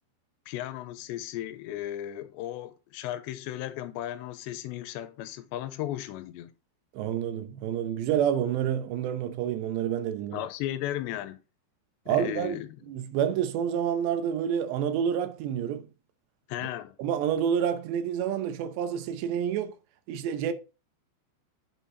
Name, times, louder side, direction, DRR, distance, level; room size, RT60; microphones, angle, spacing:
voice 1, 0.5-6.5 10.3-11.4 12.1-12.7 16.5-17.0, left 13 dB, 85° left, 2.8 m, -35 dB
voice 2, 6.9-10.4 12.1-12.6 12.9-15.9 17.0-19.8 20.1-20.5, right 9 dB, 80° right, 3.0 m, -28 dB
8.7 x 5.6 x 3.9 m
omnidirectional pair, 5.1 m